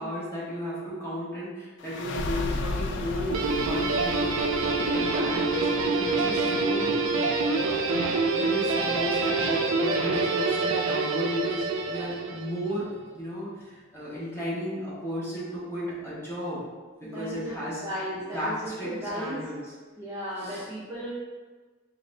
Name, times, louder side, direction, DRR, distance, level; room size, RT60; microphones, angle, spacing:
voice 1, 0.0-4.3 4.9-6.9 7.4-7.9 8.3-12.9 13.1-16.6 17.0-17.8 18.1-19.7 20.4-20.7, equal, 15° left, -9 dB, 1.1 m, -34 dB
sound 1, 1.8-13.1, left 2 dB, 60° left, 0.3 m, -38 dB
Guitar, 3.3-12.6, right 3 dB, 70° right, 0.4 m, -26 dB
voice 2, 4.7-5.4 17.1-17.6 17.8-19.4 20.0-21.1, equal, 15° right, -10 dB, 0.7 m, -35 dB
3.8 x 2.5 x 3.2 m, 1.4 s
head